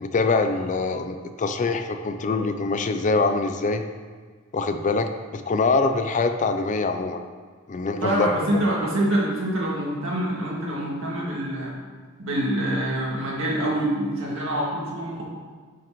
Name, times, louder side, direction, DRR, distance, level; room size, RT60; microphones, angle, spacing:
voice 1, 0.0-3.8 4.5-7.2 7.7-8.3, left 3 dB, 35° left, 7 dB, 0.4 m, -24 dB
voice 2, 8.0-11.8 12.2-15.2, right 1 dB, 65° right, -4 dB, 2.0 m, -25 dB
9.0 x 6.1 x 3.0 m, 1.5 s
head